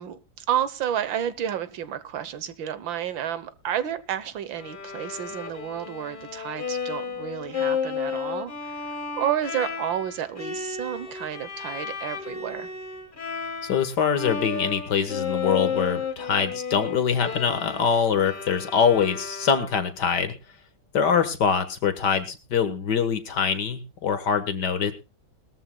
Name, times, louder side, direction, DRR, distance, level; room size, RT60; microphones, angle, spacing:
voice 1, 0.0-8.8 9.2-12.7, right 10 dB, 75° right, 14 dB, 1.7 m, -30 dB
Bowed string instrument, 4.5-13.9 14.2-20.0, left 6 dB, 25° left, 1.5 m, -33 dB
voice 2, 13.7-20.3 20.9-24.9, left 7 dB, 60° left, 10 dB, 1.8 m, -24 dB
21.0 x 13.5 x 2.2 m, 0.29 s
omnidirectional pair, 2.2 m